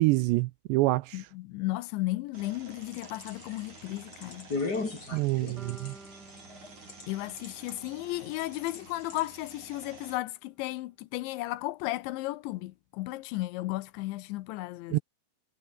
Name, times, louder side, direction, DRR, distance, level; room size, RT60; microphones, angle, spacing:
voice 1, 0.0-1.2 5.1-5.9 14.9-15.0, right 20 dB, 85° right, 2.5 m, -26 dB
voice 2, 1.1-4.5 7.1-15.0, left 18 dB, 80° left, 3.0 m, -34 dB
sound 1, 2.3-10.2, right 3 dB, 40° right, 8.6 m, -51 dB
sound 2, 2.7-7.0 7.4-7.9 8.4-8.8 9.1-9.2, left 3 dB, 20° left, 3.8 m, -36 dB
sound 3, 5.6-9.7, right 2 dB, 20° right, 7.2 m, -54 dB
omnidirectional pair, 5.5 m